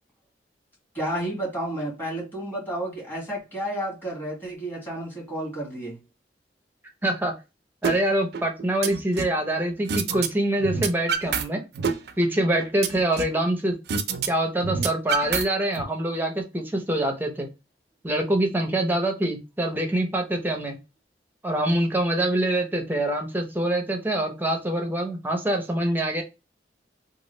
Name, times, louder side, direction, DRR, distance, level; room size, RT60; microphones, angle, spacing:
voice 1, 0.9-6.0, right 1 dB, 10° left, 1.6 m, -31 dB
voice 2, 7.0-7.3 7.8-11.6 12.2-13.8 14.3-17.5 18.0-20.8 21.4-26.2, right 1 dB, 10° right, 0.6 m, -25 dB
sound 1, 7.8-8.0 8.3-9.4 9.9-10.3 10.5-11.4 11.7-13.4 13.9-14.3 14.5-15.8, right 6 dB, 65° right, 0.4 m, -27 dB
3.0 x 2.4 x 3.0 m
head